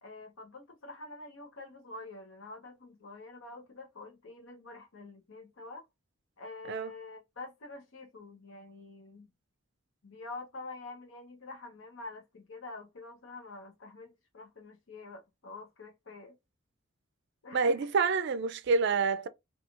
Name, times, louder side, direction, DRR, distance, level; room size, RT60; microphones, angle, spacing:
voice 1, 0.0-5.9 6.4-9.3 10.0-16.4 17.4-17.9, left 3 dB, 70° left, 0.8 m, -47 dB
voice 2, 17.5-19.3, right 4 dB, 55° right, 0.4 m, -27 dB
3.0 x 2.4 x 2.4 m
head